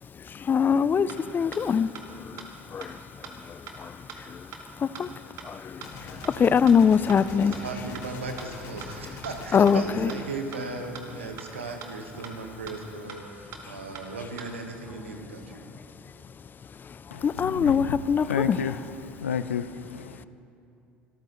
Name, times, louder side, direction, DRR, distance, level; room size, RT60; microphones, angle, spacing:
voice 1, 0.5-1.1 1.3-1.9 2.7-2.9 5.0-5.1 5.5-5.6 6.4-7.5 9.5-9.8 17.2-18.6, left 6 dB, 30° left, 0.4 m, -21 dB
sound 1, 0.7-0.8 1.1-1.2 1.5-1.6 1.9-2.0 2.4-2.5 2.8-2.9 3.2-3.3 3.7-3.8 4.1-4.2 4.5-4.6 4.9-5.0 5.4-5.5 5.8-5.9 6.2-6.3 6.7-6.8 7.1-7.2 7.5-7.6 7.9-8.0 8.4-8.5 8.8-8.9 9.2-9.3 9.7-9.8 10.1-10.2 10.5-10.6 10.9-11.0 11.4-11.5 11.8-11.9 12.2-12.3 12.7-12.8 13.1-13.2 13.5-13.6 13.9-14.0 14.4-14.5, right 8 dB, 55° right, 1.9 m, -41 dB
Gunshot gunfire, 5.8-11.0, left 4 dB, 55° left, 2.0 m, -43 dB
voice 2, 7.3-15.8, right 3 dB, 90° right, 1.3 m, -37 dB
voice 3, 17.1-20.3, left 7 dB, 85° left, 0.5 m, -31 dB
24.0 x 13.5 x 3.1 m
hypercardioid pair, 70°, 6 cm